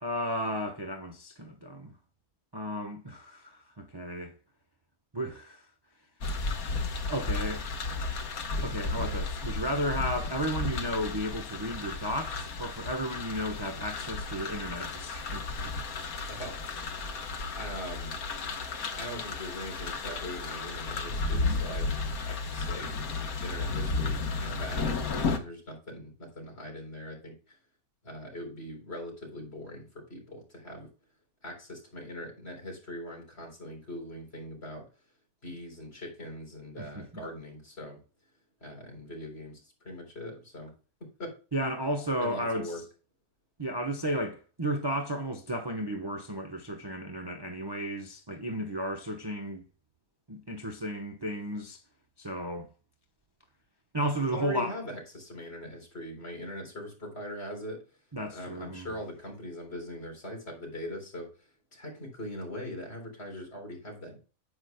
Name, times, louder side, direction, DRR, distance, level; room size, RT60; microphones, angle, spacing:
voice 1, 0.0-1.9 2.5-4.3 5.1-5.6 7.0-7.6 8.6-15.7 21.5-21.6 36.8-37.2 41.5-42.8 43.6-49.6 50.3-51.8 52.2-52.7 53.9-54.7 58.1-58.9, equal, 20° right, 0.9 m, -33 dB
sound 1, 6.2-25.4, left 3 dB, 70° left, 1.7 m, -33 dB
voice 2, 16.3-16.6 17.6-18.1 19.0-21.9 22.2-22.9 23.4-27.6 28.0-30.9 31.4-34.9 35.4-38.0 38.6-40.7 41.2-41.3 42.2-42.8 54.3-57.8 58.3-64.2, left 1 dB, 40° left, 3.9 m, -41 dB
9.8 x 8.1 x 2.2 m
omnidirectional pair, 1.6 m